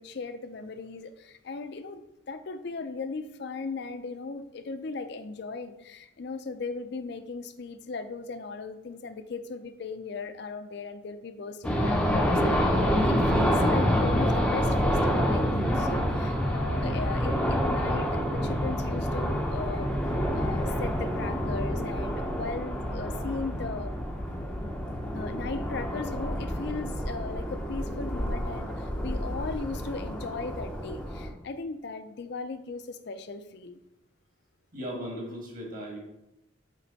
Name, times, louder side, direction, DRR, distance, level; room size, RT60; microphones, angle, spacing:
voice 1, 0.0-19.9 20.3-23.9 25.1-33.8, left 4 dB, 55° left, 10 dB, 0.4 m, -37 dB
sound 1, 11.6-31.3, equal, 5° left, 0.5 m, -28 dB
voice 2, 34.7-36.0, equal, 40° right, -1 dB, 1.6 m, -37 dB
7.5 x 3.3 x 4.0 m, 0.91 s
head